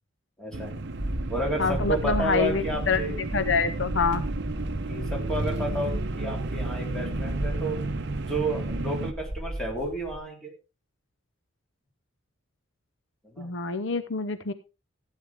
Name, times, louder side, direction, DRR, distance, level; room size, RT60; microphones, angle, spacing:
voice 1, 0.4-0.8 1.3-3.2 4.9-7.8 8.3-10.5 13.2-13.5, right 1 dB, 5° left, -1 dB, 3.2 m, -31 dB
sound 1, 0.5-9.1, right 2 dB, 55° right, 0.8 m, -33 dB
sound 2, 1.0-10.2, right 1 dB, 30° right, 4.6 m, -35 dB
voice 2, 1.6-3.0 3.3-4.2 13.4-14.5, left 4 dB, 60° left, 12 dB, 0.7 m, -26 dB
15.0 x 9.2 x 3.5 m, 0.30 s
head